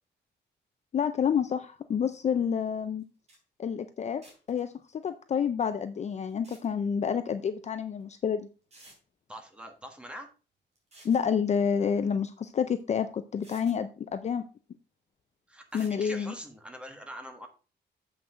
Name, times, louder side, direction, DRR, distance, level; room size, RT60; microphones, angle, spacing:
voice 1, 0.9-3.0 3.6-4.2 4.5-8.5 11.0-14.4 15.7-16.3, left 7 dB, 40° left, 10 dB, 0.5 m, -29 dB
sound 1, 3.0-3.1 3.3-3.4 4.2-4.6 6.3-6.7 8.0-8.1 8.7-9.0 10.8-11.2 12.8-12.9 13.4-13.8 15.7-16.0, right 1 dB, 35° right, 3.2 m, -54 dB
voice 2, 9.3-10.3 15.5-17.5, equal, 5° right, 4 dB, 1.4 m, -43 dB
7.7 x 5.9 x 4.9 m, 0.34 s
wide cardioid pair, 180°, 19 cm